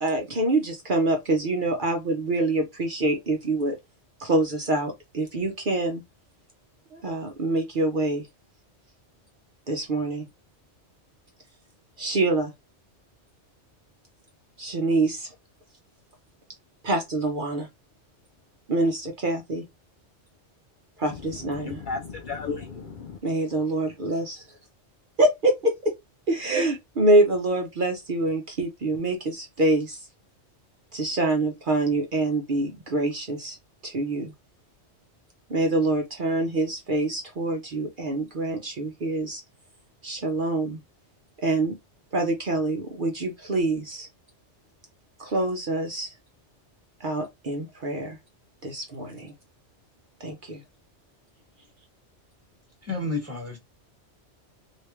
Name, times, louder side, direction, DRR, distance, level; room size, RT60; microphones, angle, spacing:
voice 1, 0.0-3.8 4.2-6.0 6.9-8.2 9.7-10.3 12.0-12.5 14.6-15.3 16.8-17.7 18.7-19.6 21.0-21.8 23.2-24.4 25.2-25.9 26.3-30.0 30.9-33.6 33.8-34.3 35.5-39.4 40.0-40.8 41.4-41.7 42.1-44.1 45.2-46.1 47.0-48.2 48.6-49.3 50.2-50.6, right 2 dB, 50° right, 0.8 m, -25 dB
voice 2, 21.1-23.2, left 4 dB, 60° left, 0.5 m, -35 dB
voice 3, 52.8-53.6, left 2 dB, 15° right, 1.3 m, -30 dB
3.3 x 2.7 x 3.0 m
omnidirectional pair, 1.2 m